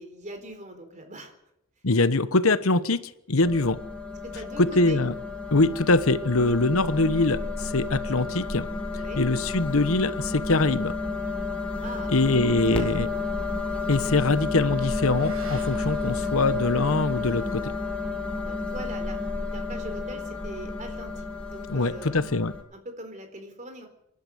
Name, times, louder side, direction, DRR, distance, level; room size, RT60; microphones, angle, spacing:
voice 1, 0.0-1.3 4.2-5.0 8.9-9.2 11.8-12.4 12.7-13.2 18.4-22.2 22.7-23.9, right 1 dB, 35° right, 6 dB, 3.9 m, -42 dB
voice 2, 1.8-3.8 4.6-5.1 5.5-8.7 9.1-10.9 12.1-13.1 13.9-17.7 21.7-22.5, left 2 dB, 75° left, 14 dB, 1.1 m, -23 dB
sound 1, 3.4-22.6, left 3 dB, 5° left, 2.3 m, -31 dB
Motorcycle / Accelerating revving vroom, 12.6-21.2, right 2 dB, 70° right, 6.4 m, -52 dB
27.0 x 12.0 x 8.2 m, 0.80 s
head